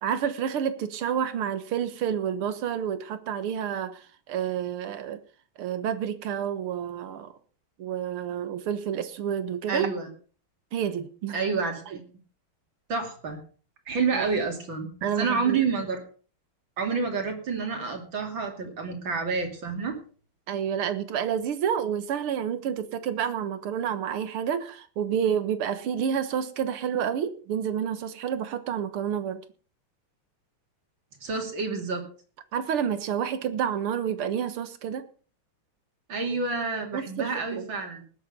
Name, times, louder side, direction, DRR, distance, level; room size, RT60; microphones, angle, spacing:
voice 1, 0.0-5.2 5.6-7.3 7.8-9.9 10.7-11.4 11.9-12.0 14.1-14.3 15.0-15.6 20.5-29.4 32.5-35.1 36.9-37.7, right 8 dB, 90° right, 12 dB, 2.1 m, -29 dB
voice 2, 9.7-10.1 11.3-12.0 12.9-13.4 13.9-14.9 15.2-16.0 16.8-20.0 31.2-32.0 36.1-38.1, right 4 dB, 65° right, 4 dB, 3.4 m, -28 dB
19.0 x 8.0 x 5.4 m, 0.40 s
omnidirectional pair, 2.3 m